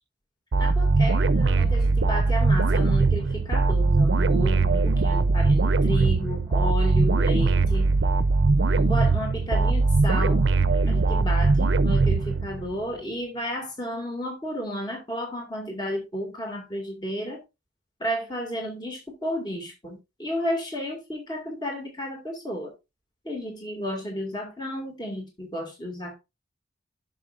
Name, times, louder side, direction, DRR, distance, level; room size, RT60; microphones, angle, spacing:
sound 1, 0.5-12.8, right 3 dB, 70° right, 0.6 m, -21 dB
voice 1, 0.6-7.9 8.8-10.4 10.9-17.4 18.0-22.7 23.2-26.1, equal, 20° left, 2.1 m, -32 dB
11.0 x 6.4 x 2.5 m
head